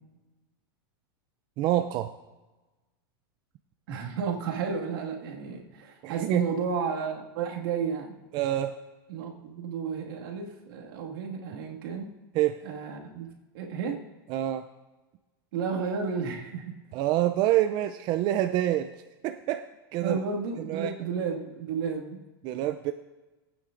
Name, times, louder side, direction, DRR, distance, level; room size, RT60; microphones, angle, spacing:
voice 1, 1.6-2.1 6.0-6.4 8.3-8.7 12.3-12.6 14.3-14.7 16.9-18.9 19.2-19.7 19.9-20.2 20.7-20.9 22.4-22.9, right 13 dB, 40° right, 8 dB, 0.4 m, -26 dB
voice 2, 3.9-8.1 9.1-12.1 12.6-13.3 13.5-14.0 15.5-16.7 20.0-22.2, right 5 dB, 70° right, 0 dB, 1.9 m, -32 dB
19.5 x 9.1 x 2.5 m, 1.1 s
supercardioid pair, 145°, 12 cm